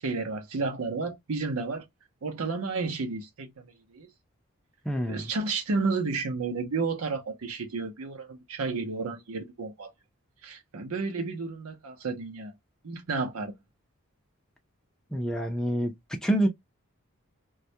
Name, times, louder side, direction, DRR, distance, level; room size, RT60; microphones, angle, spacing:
voice 1, 0.0-1.8 2.2-4.1 5.1-9.9 10.4-12.5 12.8-13.6, right 4 dB, 85° right, 0.6 m, -32 dB
voice 2, 4.9-5.3 15.1-15.9 16.2-16.5, right 1 dB, 5° left, 0.4 m, -27 dB
2.3 x 2.0 x 2.7 m
head